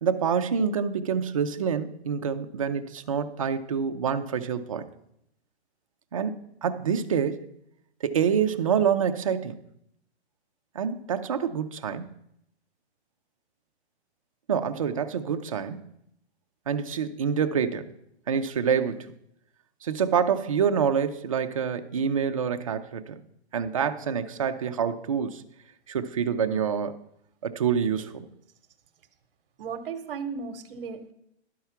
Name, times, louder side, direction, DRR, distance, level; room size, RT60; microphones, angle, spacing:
voice 1, 0.0-4.9 6.1-7.4 8.0-9.6 10.7-12.1 14.5-15.8 16.7-17.9 18.3-19.1 19.8-23.2 23.5-25.4 25.9-27.0 27.4-28.3, right 7 dB, 35° right, 8 dB, 0.4 m, -27 dB
voice 2, 29.6-31.1, right 5 dB, 55° right, 9 dB, 0.9 m, -35 dB
11.5 x 4.6 x 5.6 m, 0.77 s
hypercardioid pair, 165°, 33 cm